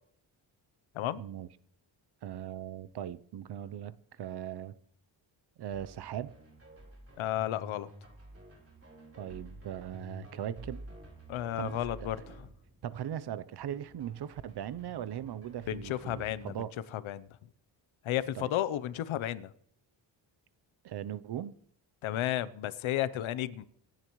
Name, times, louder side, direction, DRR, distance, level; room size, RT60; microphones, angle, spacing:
voice 1, 1.2-1.5 2.2-4.7 5.6-6.3 9.2-10.8 11.6-11.8 12.8-16.7 18.4-18.5 20.8-21.6, right 10 dB, 55° right, 0.7 m, -39 dB
sound 1, 5.7-16.5, right 1 dB, 30° right, 4.0 m, -51 dB
voice 2, 7.2-7.9 11.3-12.5 15.7-17.3 18.0-19.5 22.0-23.7, left 12 dB, 85° left, 0.8 m, -33 dB
26.5 x 10.5 x 3.1 m
cardioid pair, 115°, 47 cm